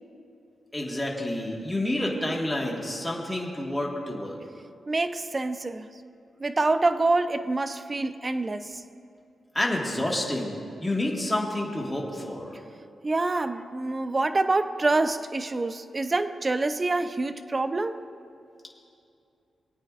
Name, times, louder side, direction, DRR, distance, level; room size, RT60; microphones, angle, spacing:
voice 1, 0.7-4.4 9.5-12.6, left 1 dB, 10° left, -2 dB, 1.6 m, -29 dB
voice 2, 4.9-5.9 6.4-8.8 13.0-18.0, right 2 dB, 25° right, 10 dB, 0.5 m, -26 dB
24.0 x 8.8 x 2.5 m, 2.6 s
wide cardioid pair, 115°, 0 cm